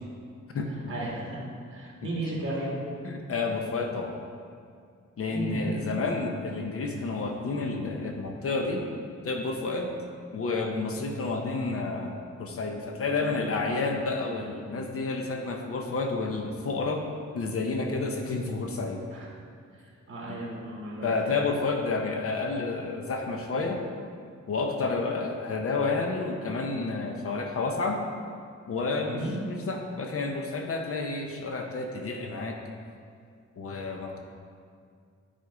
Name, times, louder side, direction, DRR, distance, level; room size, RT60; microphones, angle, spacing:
voice 1, 0.9-1.4 1.7-2.8 5.3-5.9 13.2-13.4 19.1-19.3 19.8-21.3 29.1-29.3, right 1 dB, 45° right, -5 dB, 2.0 m, -35 dB
voice 2, 3.0-4.2 5.2-9.0 9.2-9.9 10.3-17.1 17.3-19.0 21.0-23.8 24.5-28.0 28.7-32.6 33.6-34.2, left 3 dB, 50° left, 2 dB, 0.7 m, -30 dB
9.6 x 4.2 x 4.9 m, 2.3 s
wide cardioid pair, 165°, 29 cm